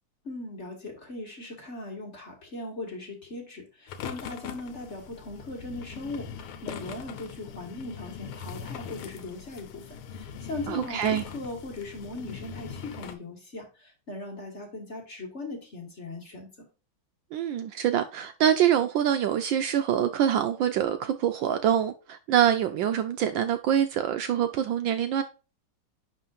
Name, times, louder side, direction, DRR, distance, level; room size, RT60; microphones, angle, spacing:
voice 1, 0.2-16.5, left 2 dB, 35° left, 1.6 m, -39 dB
sound 1, 3.9-13.2, left 7 dB, 85° left, 1.6 m, -41 dB
voice 2, 10.7-11.2 17.3-25.2, right 10 dB, 75° right, 1.2 m, -25 dB
10.5 x 3.8 x 2.4 m
omnidirectional pair, 2.4 m